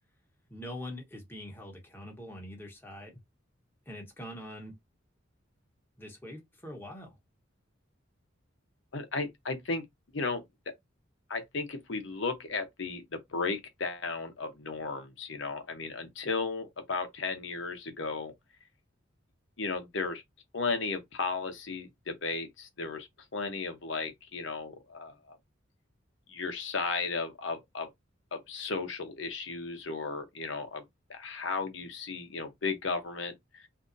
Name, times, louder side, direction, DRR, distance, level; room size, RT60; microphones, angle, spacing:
voice 1, 0.5-3.2 3.9-4.7 6.0-7.1, left 1 dB, 10° left, 1.1 m, -43 dB
voice 2, 8.9-9.8 10.1-10.4 11.3-18.3 19.6-20.2 20.5-25.4 26.3-27.9 28.3-30.8 31.1-33.6, left 4 dB, 65° left, 0.8 m, -35 dB
3.8 x 2.7 x 2.6 m
head